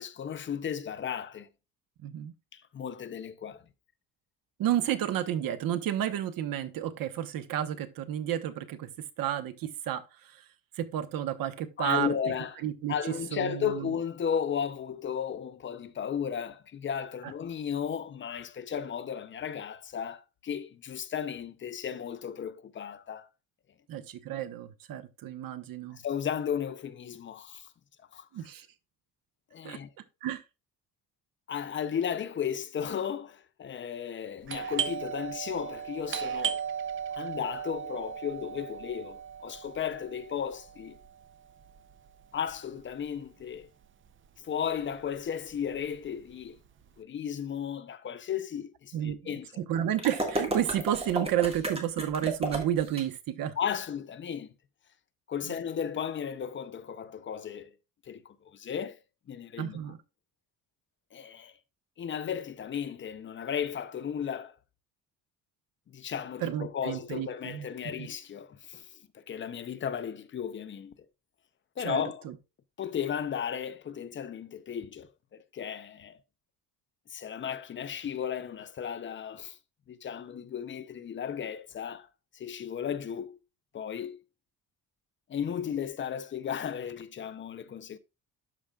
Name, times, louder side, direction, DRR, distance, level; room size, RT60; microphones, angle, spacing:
voice 1, 0.0-1.5 2.5-3.6 11.8-12.6 12.9-23.3 25.9-27.7 28.1-28.3 29.5-29.9 31.5-36.6 37.1-41.0 42.3-43.7 44.4-46.6 47.0-49.6 53.6-54.5 55.3-57.7 58.1-59.0 59.3-59.8 61.1-61.5 62.0-64.5 65.9-68.8 69.1-70.9 71.8-72.2 72.8-76.2 77.1-79.6 79.9-82.1 82.3-83.4 83.7-84.2 85.3-88.0, left 8 dB, 35° left, 0.6 m, -35 dB
voice 2, 2.0-2.3 4.6-8.9 9.2-10.0 10.8-12.1 12.6-12.9 13.3-13.9 23.9-26.0 28.3-28.7 29.6-29.8 30.2-30.4 48.9-53.5 55.4-55.5 59.6-60.0 66.4-68.1 71.8-72.3, right 11 dB, 70° right, 1.1 m, -31 dB
Doorbell, 34.4-43.8 44.1-44.2 44.8-45.2 45.5-46.9, right 8 dB, 35° right, 0.6 m, -37 dB
sound 1, 50.0-53.0, right 2 dB, 15° right, 1.7 m, -32 dB
12.5 x 5.0 x 2.3 m
cardioid pair, 165°, 36 cm